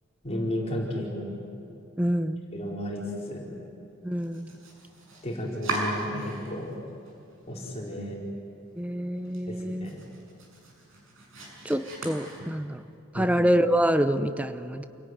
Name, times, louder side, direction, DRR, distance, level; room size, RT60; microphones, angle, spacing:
voice 1, 0.2-1.3 2.5-3.5 5.2-6.7 7.5-8.2 9.5-10.0 13.1-13.4, left 1 dB, 30° left, -3 dB, 4.5 m, -33 dB
voice 2, 2.0-2.4 4.0-4.5 8.8-9.9 11.6-12.8 13.1-14.8, equal, 5° right, 10 dB, 0.8 m, -26 dB
Domestic sounds home sounds, 4.2-6.7 7.1-7.8 8.2-8.3 8.7-8.8 9.2-12.9, right 2 dB, 75° right, 6.5 m, -38 dB
28.5 x 17.5 x 9.4 m, 2.7 s
head